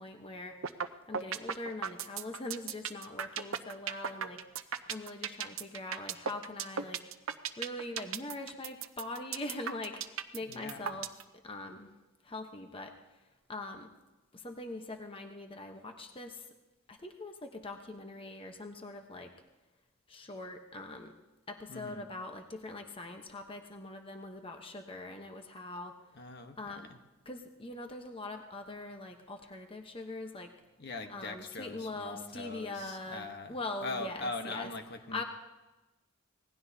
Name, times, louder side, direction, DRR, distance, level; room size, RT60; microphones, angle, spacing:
voice 1, 0.0-7.0 7.6-11.1 11.4-11.9 12.2-13.2 13.5-13.9 14.3-16.5 16.9-19.3 20.1-21.1 21.5-25.9 26.6-26.9 27.2-30.5 31.1-34.7 35.1-35.2, left 2 dB, 25° left, 4 dB, 1.0 m, -42 dB
sound 1, 0.6-0.9 1.1-11.2, right 7 dB, 65° right, 0.7 m, -35 dB
voice 2, 10.5-11.0 21.7-22.1 26.1-26.6 30.8-33.6 33.8-35.2, left 3 dB, 50° left, 6 dB, 1.1 m, -41 dB
26.0 x 19.0 x 2.8 m, 1.1 s
head